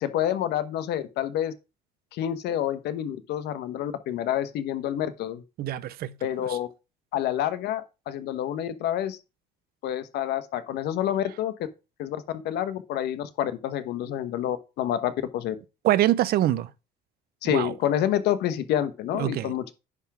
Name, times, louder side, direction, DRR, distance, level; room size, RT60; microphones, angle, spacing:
voice 1, 0.0-1.5 2.1-5.4 6.2-6.7 7.1-9.2 9.8-11.5 12.0-15.5 17.4-19.7, left 11 dB, 80° left, 1.1 m, -28 dB
voice 2, 5.6-6.1 6.5-6.6 15.8-16.7 17.5-17.7 19.2-19.5, right 13 dB, 65° right, 0.6 m, -24 dB
9.7 x 3.5 x 6.0 m
cardioid pair, 110°, 17 cm